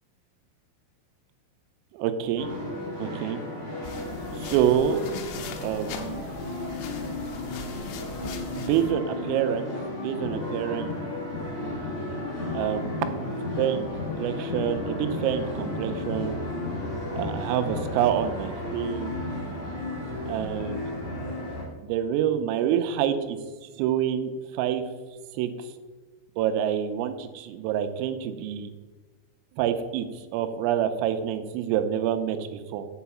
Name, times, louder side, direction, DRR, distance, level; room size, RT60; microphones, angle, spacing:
voice 1, 1.9-2.5 3.0-3.4 4.4-5.0 5.6-6.2 8.6-9.7 10.0-10.9 12.5-16.4 17.2-19.1 20.3-20.8 21.8-23.4 23.8-24.8 25.3-25.7 26.4-28.7 29.6-30.1 30.3-32.9, right 10 dB, 90° right, 8 dB, 3.4 m, -27 dB
sound 1, 2.4-21.6, left 2 dB, 45° left, 2.7 m, -33 dB
sound 2, 3.8-8.9, left 5 dB, 80° left, 2.7 m, -40 dB
6.9 x 5.5 x 7.0 m, 1.3 s
omnidirectional pair, 5.8 m